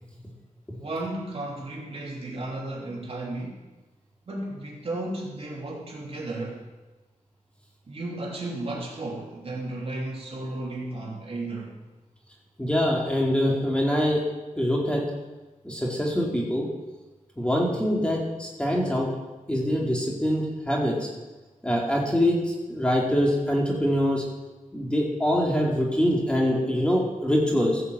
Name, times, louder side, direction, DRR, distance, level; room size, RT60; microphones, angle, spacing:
voice 1, 0.8-3.5 4.3-6.6 7.9-11.8, right 2 dB, 45° right, -3 dB, 3.1 m, -34 dB
voice 2, 12.6-14.2 14.6-15.0 15.6-16.7 17.4-19.1 19.5-21.1 21.6-24.2 24.7-27.8, equal, 10° left, -3 dB, 2.4 m, -24 dB
16.0 x 5.7 x 7.9 m, 1.2 s
wide cardioid pair, 125°, 13 cm